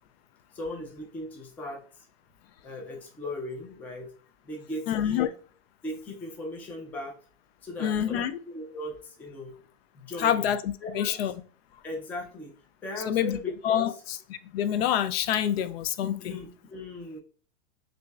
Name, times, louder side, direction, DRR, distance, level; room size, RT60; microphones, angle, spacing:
voice 1, 0.5-2.1 2.6-4.1 4.4-5.3 5.8-7.2 7.6-9.5 9.9-10.5 10.8-11.1 11.8-12.5 12.8-13.9 16.2-17.2, left 1 dB, 5° left, 0.3 m, -38 dB
voice 2, 4.9-5.3 7.8-8.4 10.2-11.3 13.1-13.4 13.6-14.2 14.5-16.4, left 10 dB, 70° left, 0.5 m, -26 dB
6.0 x 2.7 x 2.3 m
supercardioid pair, 150°, 32 cm